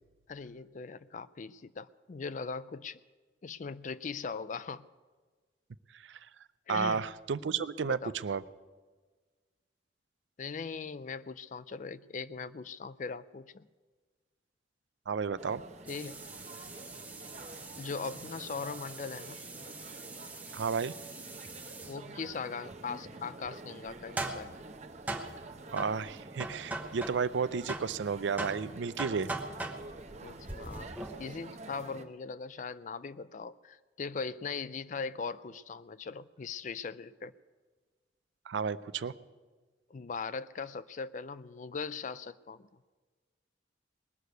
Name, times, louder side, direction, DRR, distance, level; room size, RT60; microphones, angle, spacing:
voice 1, 0.3-3.0 3.4-4.9 6.7-7.1 7.8-8.1 10.4-13.7 15.9-16.3 17.8-19.4 21.8-24.5 30.2-37.3 39.9-42.7, left 5 dB, 45° left, 16 dB, 0.4 m, -40 dB
voice 2, 6.7-8.4 15.1-15.6 20.5-20.9 25.7-29.3 38.5-39.1, right 5 dB, 80° right, 16 dB, 0.5 m, -32 dB
sound 1, 15.4-32.0, right 3 dB, 40° right, 0.8 m, -48 dB
sound 2, 15.9-22.0 23.9-27.4 27.7-31.3, right 2 dB, 10° right, 0.9 m, -42 dB
19.5 x 6.6 x 9.3 m, 1.4 s
head